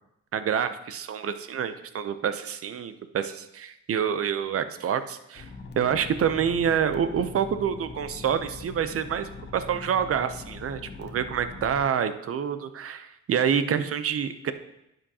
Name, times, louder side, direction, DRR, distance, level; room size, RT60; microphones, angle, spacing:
voice 1, 0.3-5.5 5.8-14.5, right 8 dB, 50° right, 11 dB, 0.7 m, -27 dB
sound 1, 5.3-11.9, left 3 dB, 35° left, 1.0 m, -42 dB
11.0 x 7.8 x 2.9 m, 0.83 s
cardioid pair, 90°, 30 cm